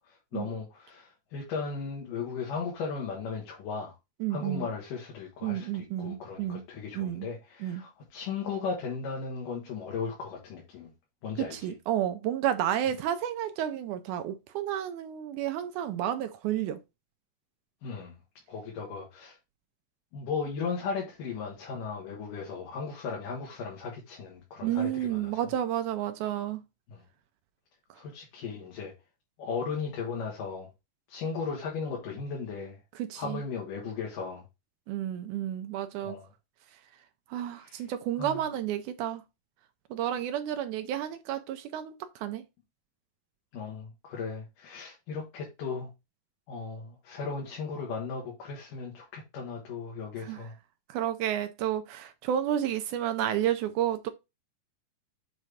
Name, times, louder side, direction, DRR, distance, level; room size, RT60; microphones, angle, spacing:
voice 1, 0.3-3.9 4.3-5.7 6.0-10.9 11.2-11.5 17.8-18.2 18.5-19.4 20.1-25.2 27.9-28.9 29.4-30.7 31.1-32.8 33.2-34.4 36.0-36.2 38.2-38.4 43.5-45.9 46.5-50.5, left 5 dB, 80° left, 3.1 m, -36 dB
voice 2, 4.2-4.7 5.4-6.6 6.9-7.3 7.6-7.8 11.4-16.8 24.6-26.6 27.9-28.0 32.9-33.4 34.9-36.2 36.7-39.2 39.9-42.5 50.2-50.6 50.9-54.1, right 11 dB, 80° right, 1.9 m, -31 dB
7.5 x 3.0 x 4.9 m
omnidirectional pair, 3.8 m